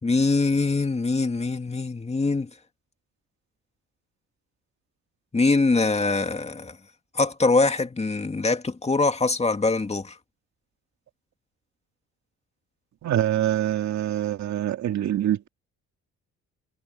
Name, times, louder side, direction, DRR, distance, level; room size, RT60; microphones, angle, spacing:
voice 1, 0.0-2.5 5.3-6.8 7.1-10.2, left 3 dB, 20° left, 2.2 m, -23 dB
voice 2, 13.0-15.5, right 11 dB, 65° right, 2.3 m, -25 dB
cardioid pair, 90°, 30 cm